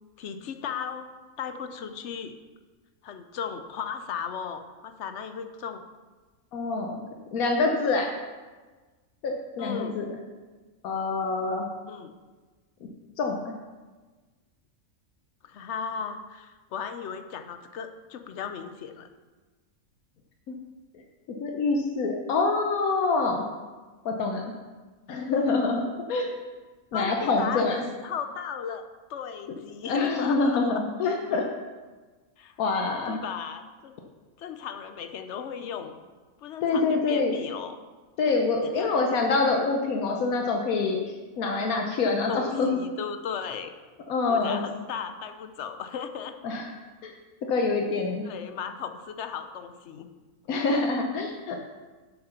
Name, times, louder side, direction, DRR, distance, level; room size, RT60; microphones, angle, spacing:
voice 1, 0.2-1.1 1.4-2.4 3.0-5.8 9.6-10.0 11.9-12.1 15.4-19.1 26.9-28.8 29.1-30.6 32.4-32.6 33.1-33.9 34.4-36.0 36.4-37.8 38.7-38.9 42.3-43.7 44.3-46.3 48.3-50.1, left 7 dB, 60° left, 7 dB, 0.9 m, -36 dB
voice 2, 6.5-7.0 7.3-8.1 9.2-10.1 10.8-11.7 13.2-13.5 20.5-20.6 20.9-21.0 21.4-23.4 24.0-24.4 25.1-25.8 26.1-26.3 26.9-27.8 29.9-31.4 32.6-33.2 36.6-37.4 38.2-42.8 44.1-44.6 46.4-46.7 47.0-47.1 47.5-48.2 50.5-51.6, left 3 dB, 85° left, 2 dB, 1.3 m, -26 dB
7.6 x 6.8 x 5.6 m, 1.3 s
omnidirectional pair, 1.5 m